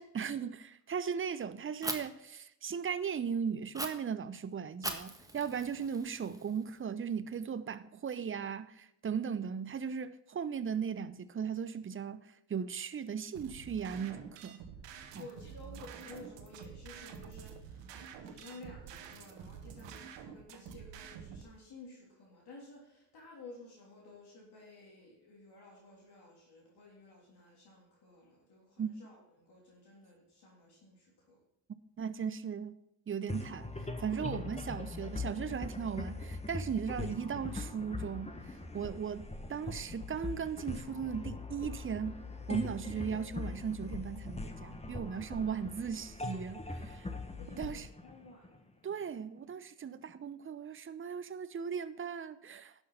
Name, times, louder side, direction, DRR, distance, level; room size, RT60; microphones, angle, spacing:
voice 1, 0.0-14.6 28.8-28.9 32.0-32.8 33.1-47.1 47.6-47.9 48.8-52.7, right 7 dB, 25° right, 0.7 m, -37 dB
Fire, 1.8-2.0 3.7-3.9 4.8-6.8, right 1 dB, 5° right, 1.5 m, -40 dB
sound 1, 13.3-21.4, right 7 dB, 65° right, 1.3 m, -48 dB
voice 2, 15.1-31.4 47.3-48.9, left 2 dB, 55° left, 3.4 m, -54 dB
sound 2, 33.3-48.9, left 3 dB, 15° left, 1.4 m, -41 dB
11.5 x 6.4 x 5.6 m
hypercardioid pair, 45°, 48 cm